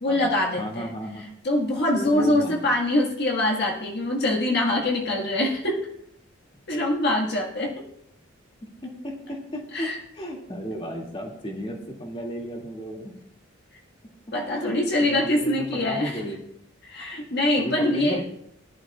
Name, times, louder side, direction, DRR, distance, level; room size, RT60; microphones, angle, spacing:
voice 1, 0.0-0.9 1.4-5.9 6.7-7.8 9.7-10.0 14.3-16.2 16.8-18.2, left 1 dB, 55° left, -1 dB, 1.8 m, -24 dB
voice 2, 0.6-1.2 1.9-2.7 6.7-6.8 8.8-9.9 10.1-13.1 14.5-14.7 15.0-16.4 17.5-18.2, equal, 30° left, -1 dB, 2.4 m, -34 dB
19.0 x 11.5 x 2.4 m, 0.72 s
head